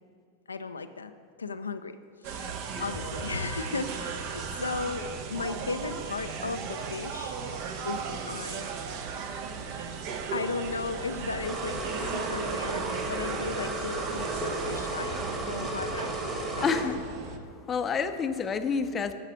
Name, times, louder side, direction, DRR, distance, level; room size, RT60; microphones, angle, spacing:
voice 1, 0.5-1.1 1.4-2.0 2.2-7.4 7.8-8.7 10.3-16.2 16.6-16.8, left 4 dB, 75° left, 8 dB, 0.4 m, -36 dB
sound 1, 2.2-17.4, right 6 dB, 45° right, 0.9 m, -36 dB
sound 2, 11.4-16.8, right 2 dB, 25° right, 2.1 m, -34 dB
voice 2, 16.6-17.0 17.7-19.1, left 5 dB, 20° left, 9 dB, 0.6 m, -28 dB
13.0 x 4.9 x 7.1 m, 2.2 s
figure-of-eight pair, 90°, 0 cm